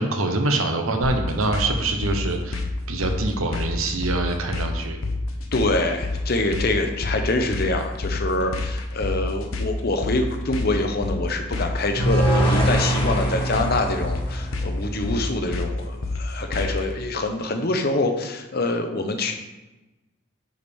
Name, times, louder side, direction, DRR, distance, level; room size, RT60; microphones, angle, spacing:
voice 1, 0.0-5.0, right 2 dB, 90° right, 5 dB, 1.0 m, -25 dB
sound 1, 1.0-16.9, left 2 dB, 85° left, 0.9 m, -28 dB
voice 2, 5.5-19.3, left 2 dB, 45° left, 5 dB, 0.8 m, -25 dB
sound 2, 12.0-15.2, right 1 dB, 25° left, 1.5 m, -23 dB
9.3 x 5.0 x 3.5 m, 1.1 s
head